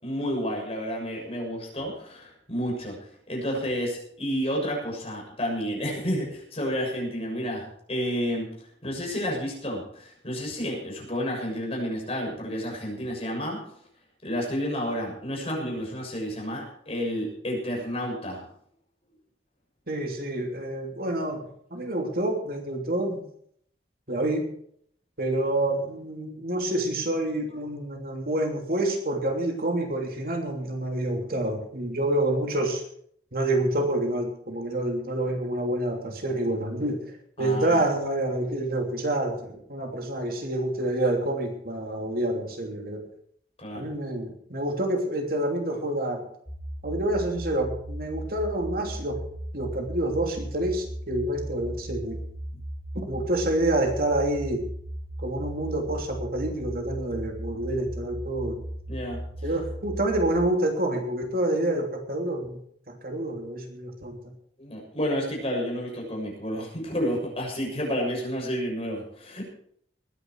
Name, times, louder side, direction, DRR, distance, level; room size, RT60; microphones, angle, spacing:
voice 1, 0.0-2.9 3.3-8.5 8.8-13.6 14.2-18.4 37.4-37.8 43.6-43.9 58.9-59.2 64.6-69.4, equal, 35° left, -1 dB, 6.9 m, -30 dB
voice 2, 19.9-21.4 21.7-23.2 24.1-24.5 25.2-32.8 33.3-37.0 37.4-43.0 43.7-46.2 46.8-49.2 49.5-52.2 52.9-54.7 55.2-58.6 59.4-62.6 62.9-64.3, right 1 dB, 55° right, 3 dB, 3.0 m, -28 dB
sound 1, 46.5-60.5, right 1 dB, 10° right, 4.4 m, -37 dB
20.5 x 10.5 x 4.7 m, 0.65 s
head